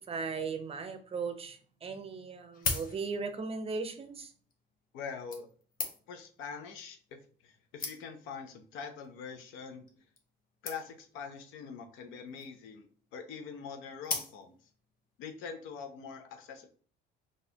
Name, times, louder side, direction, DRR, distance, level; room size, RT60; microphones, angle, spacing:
voice 1, 0.0-4.3, right 4 dB, 30° right, 8 dB, 0.6 m, -37 dB
sound 1, 1.5-1.6 2.3-3.4 4.3-4.5 5.3-6.3 7.1-7.2 7.5-7.6 7.8-8.3 9.0-9.3 9.6-9.7 9.9-10.0 10.2-10.3 10.7-11.1 12.1-12.6 14.0-14.7 15.3-15.4, left 4 dB, 45° left, 0.8 m, -38 dB
voice 2, 4.9-5.5 6.1-10.0 10.6-14.5 15.2-16.7, left 6 dB, 90° left, 6 dB, 0.7 m, -44 dB
4.0 x 2.5 x 2.8 m, 0.42 s
cardioid pair, 110°, 20 cm